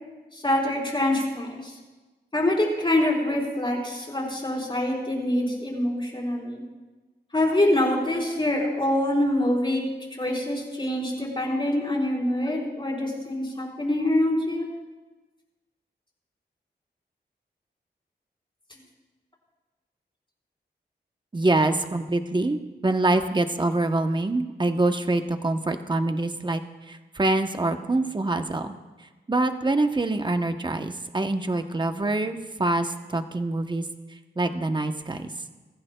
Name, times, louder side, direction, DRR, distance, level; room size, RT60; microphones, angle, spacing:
voice 1, 0.3-1.7 2.3-6.6 7.3-9.8 10.2-14.7, left 1 dB, 30° left, -2 dB, 4.4 m, -25 dB
voice 2, 21.3-26.6 26.9-28.7 29.3-33.8 34.4-35.3, right 2 dB, 25° right, 7 dB, 0.9 m, -25 dB
23.5 x 14.0 x 2.3 m, 1.2 s
wide cardioid pair, 75°, 18 cm